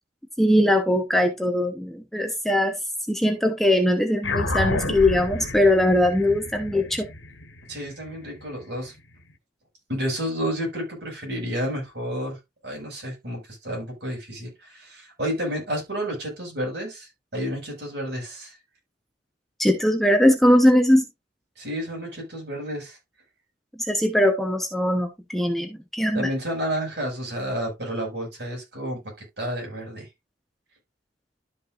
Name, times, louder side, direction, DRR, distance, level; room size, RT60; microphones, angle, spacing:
voice 1, 0.4-2.7 3.1-7.1 19.6-21.1 23.9-26.3, left 1 dB, ahead, 0.8 m, -20 dB
sound 1, 4.2-9.0, left 2 dB, 90° left, 1.5 m, -31 dB
voice 2, 7.7-8.9 9.9-12.4 12.6-18.6 21.6-23.0 26.1-29.0 29.4-30.1, equal, 60° right, 5.6 m, -30 dB
12.5 x 5.6 x 2.5 m
head